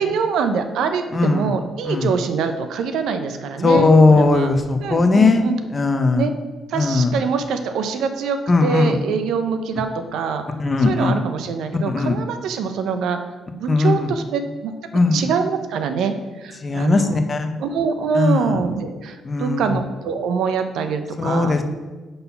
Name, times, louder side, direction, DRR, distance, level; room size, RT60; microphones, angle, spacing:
voice 1, 0.0-4.5 4.8-5.6 6.1-6.3 6.7-10.4 10.8-13.2 13.5-14.7 15.1-16.1 16.4-17.1 17.6-21.6, right 6 dB, 80° right, 8 dB, 0.5 m, -24 dB
voice 2, 1.1-1.5 1.8-2.1 3.6-5.5 5.7-6.3 6.7-7.2 8.5-9.0 10.6-11.1 11.9-12.2 13.7-14.1 14.9-15.2 16.6-17.6 18.1-18.6 19.2-19.8 21.2-21.6, left 3 dB, 30° left, 7 dB, 0.7 m, -18 dB
5.7 x 4.0 x 5.6 m, 1.3 s
cardioid pair, 90°, 0 cm